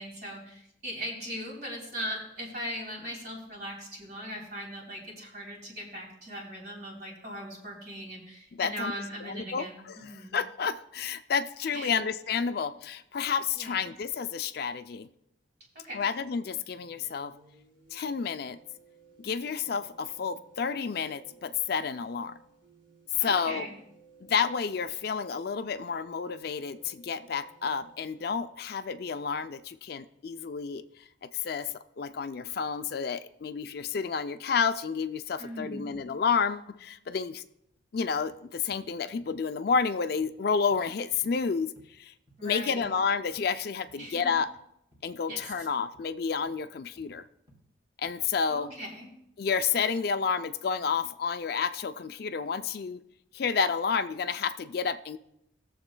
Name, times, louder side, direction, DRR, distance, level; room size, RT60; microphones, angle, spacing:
voice 1, 0.0-10.4 11.7-12.0 13.5-13.9 15.7-16.0 23.2-23.7 35.4-35.9 42.4-42.9 44.0-44.3 45.3-45.7 48.5-49.1, equal, 55° right, -3 dB, 3.3 m, -39 dB
voice 2, 8.6-8.9 9.3-15.1 15.9-17.3 17.9-18.6 19.2-22.3 23.2-23.7 24.3-30.8 31.4-31.7 32.0-37.4 37.9-41.7 42.0-42.1 42.4-44.5 45.0-47.2 48.0-48.7 49.4-53.0 53.3-55.2, left 6 dB, 50° left, 11 dB, 0.4 m, -30 dB
sound 1, 16.7-28.4, right 5 dB, 80° right, 3.6 m, -59 dB
sound 2, 37.7-37.8 38.1-38.4 38.7-38.9 39.2-39.4 39.7-39.9 40.2-40.4 40.7-40.9 41.2-41.4 41.7-41.9 42.3-42.5 42.8-43.0 43.3-43.5 43.9-44.0 44.4-44.6 44.9-45.0 45.4-45.6 45.9-46.2 46.4-46.6 47.0-47.2 47.5-47.7 48.0-48.2 48.5-48.7, right 1 dB, 20° right, 2.3 m, -60 dB
21.0 x 7.1 x 2.2 m, 0.79 s
head